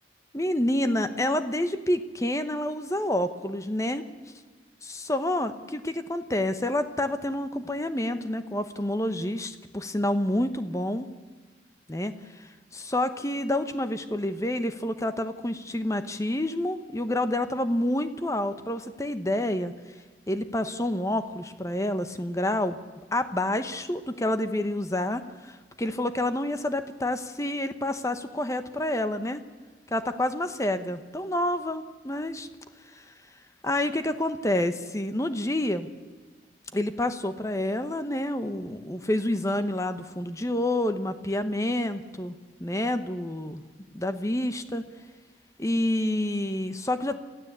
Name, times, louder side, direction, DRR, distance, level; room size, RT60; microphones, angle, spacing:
voice 1, 0.3-4.0 4.8-11.1 11.9-19.7 20.3-22.8 23.1-29.4 29.9-32.5 32.9-33.0 33.6-35.9 36.7-43.6 43.9-44.8 45.6-47.2, left 1 dB, 15° left, 10 dB, 1.0 m, -28 dB
26.5 x 15.0 x 8.2 m, 1.4 s
head